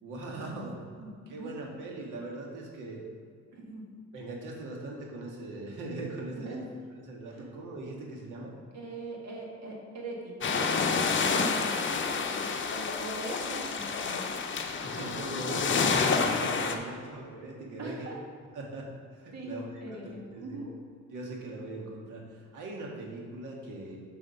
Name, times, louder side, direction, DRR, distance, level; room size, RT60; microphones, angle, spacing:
voice 1, 0.0-0.8 1.3-3.0 4.1-6.6 7.0-8.5 14.8-18.1 18.5-18.9 19.1-20.6 21.1-24.0, right 2 dB, 85° right, -1 dB, 1.7 m, -40 dB
voice 2, 1.0-1.5 3.5-3.8 6.4-6.6 7.3-7.5 8.7-14.3 16.6-16.9 17.8-18.2 19.3-20.7, right 2 dB, 60° right, -1 dB, 2.0 m, -42 dB
sound 1, 10.4-16.8, left 5 dB, 40° left, 0.8 m, -29 dB
7.4 x 4.8 x 5.7 m, 2.1 s
cardioid pair, 90°, 30 cm